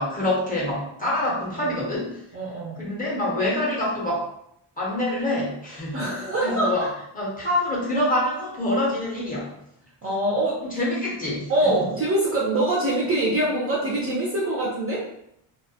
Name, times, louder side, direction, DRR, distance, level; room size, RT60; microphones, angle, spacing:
voice 1, 0.0-2.2 2.8-4.3 4.8-6.0 6.4-6.9 7.1-9.5 10.6-11.5, left 1 dB, 20° left, -6 dB, 0.5 m, -26 dB
voice 2, 2.3-2.8 5.9-6.9 10.0-10.6 11.5-15.0, right 1 dB, 30° right, -5 dB, 0.4 m, -24 dB
2.3 x 2.1 x 2.6 m, 0.76 s
cardioid pair, 160°, 47 cm